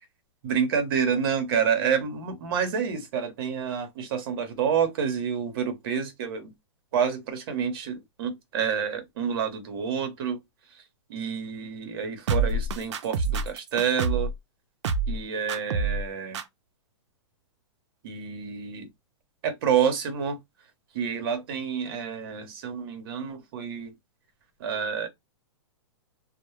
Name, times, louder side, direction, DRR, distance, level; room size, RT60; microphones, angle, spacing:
voice 1, 0.4-6.5 6.9-10.4 10.7-10.8 11.1-14.3 15.1-16.4 18.0-18.9 19.4-20.4 20.9-23.9 24.6-25.1, right 7 dB, 50° right, 0.9 m, -28 dB
sound 1, 12.3-14.4 14.8-15.2 15.5-16.1 16.3-16.4, right 4 dB, 70° right, 0.5 m, -26 dB
2.2 x 2.0 x 3.0 m
hypercardioid pair, 160°, 15 cm